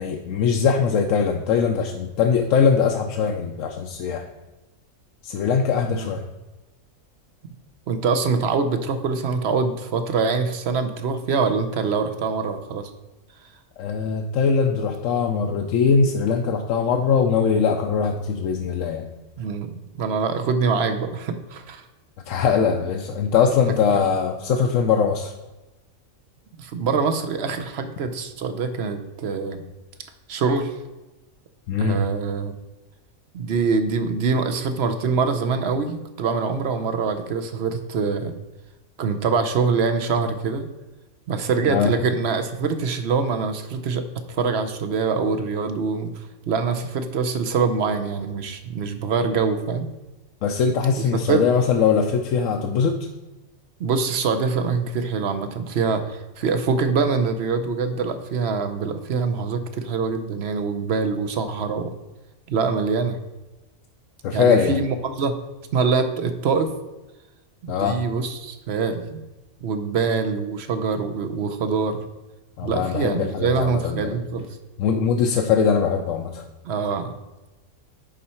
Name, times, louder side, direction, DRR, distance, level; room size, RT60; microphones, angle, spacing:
voice 1, 0.0-4.3 5.2-6.2 13.8-19.1 22.3-25.3 31.7-32.0 41.7-41.9 50.4-53.0 64.2-64.8 67.7-68.0 72.6-74.2 74.8-76.4, left 6 dB, 75° left, 3 dB, 1.0 m, -21 dB
voice 2, 7.9-12.9 19.4-21.8 23.9-24.1 26.6-29.6 30.3-30.7 31.8-32.5 33.3-38.3 39.0-40.7 41.3-49.9 51.3-51.4 53.8-61.9 62.5-63.2 64.3-65.3 65.7-66.7 67.6-69.2 69.6-72.0 72.6-74.5 76.6-77.1, right 5 dB, 60° right, 8 dB, 0.9 m, -24 dB
10.0 x 4.2 x 4.3 m, 1.1 s
omnidirectional pair, 1.4 m